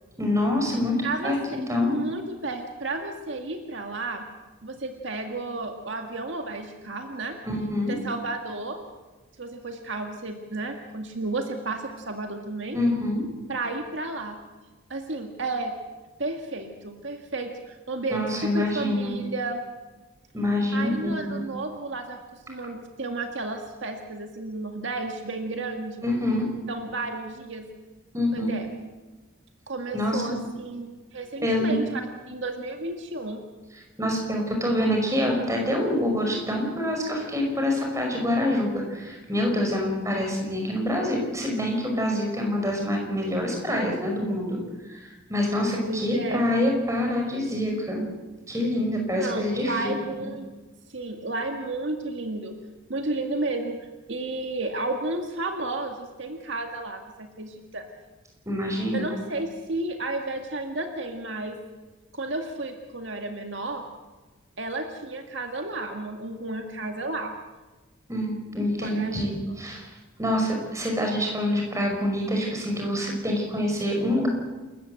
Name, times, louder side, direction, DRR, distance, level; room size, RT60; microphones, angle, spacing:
voice 1, 0.2-2.0 7.5-8.0 12.7-13.3 18.1-19.1 20.3-21.4 26.0-26.5 28.1-28.5 29.9-30.3 31.4-31.8 34.0-44.6 44.8-48.0 48.5-50.0 50.2-50.3 58.5-59.1 68.1-74.3, left 1 dB, 15° right, 1 dB, 5.5 m, -26 dB
voice 2, 1.0-1.6 1.9-4.3 4.6-7.4 7.9-8.8 9.4-12.8 13.5-14.4 14.9-15.7 16.2-19.6 20.7-26.0 26.7-27.7 28.3-28.7 29.7-32.0 32.3-33.4 45.8-46.5 49.2-50.5 50.9-52.6 52.9-57.9 58.9-61.6 62.1-63.9 64.6-67.3 68.8-69.3, right 2 dB, 65° right, 4 dB, 1.9 m, -32 dB
28.0 x 14.5 x 7.9 m, 1.3 s
head